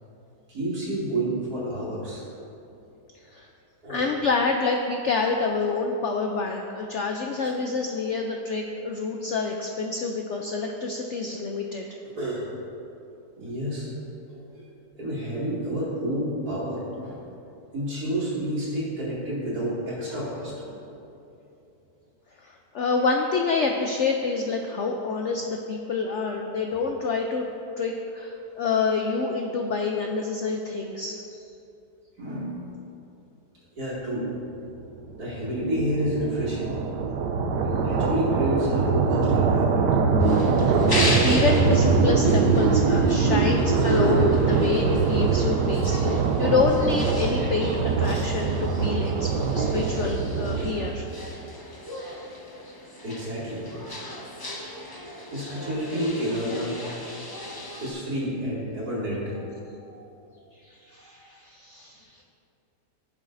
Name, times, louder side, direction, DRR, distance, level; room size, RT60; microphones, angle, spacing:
voice 1, 0.5-2.3 3.8-4.0 7.4-7.5 12.1-12.5 13.4-13.9 14.3-14.7 14.9-17.2 17.7-21.0 32.2-32.6 33.8-34.3 35.2-36.8 37.6-40.0 43.8-44.2 48.0-48.2 53.0-53.7 55.3-56.9 57.8-60.0 61.0-61.2, equal, 65° right, -8 dB, 3.0 m, -29 dB
voice 2, 3.9-11.9 22.4-27.5 27.8-31.2 40.7-40.9 41.2-44.2 44.5-51.1 60.6-62.2, left 4 dB, 70° left, 2 dB, 0.7 m, -27 dB
sound 1, 34.9-51.2, right 5 dB, 90° right, 1.3 m, -23 dB
sound 2, 40.2-57.9, left 1 dB, 25° left, 0.5 m, -36 dB
15.0 x 7.2 x 2.6 m, 2.8 s
omnidirectional pair, 1.8 m